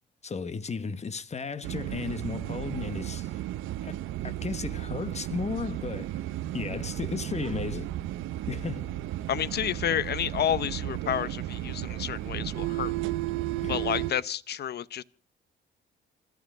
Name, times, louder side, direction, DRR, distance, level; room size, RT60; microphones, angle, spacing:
voice 1, 0.2-3.4 3.8-3.9 4.2-6.1 6.5-7.9 8.5-8.9 13.6-13.8, left 5 dB, 35° left, 1.3 m, -34 dB
sound 1, 1.6-14.1, right 14 dB, 85° right, 0.8 m, -34 dB
voice 2, 9.3-12.9 13.7-15.0, left 9 dB, 55° left, 0.8 m, -30 dB
27.0 x 9.3 x 4.9 m
cardioid pair, 90°, 20 cm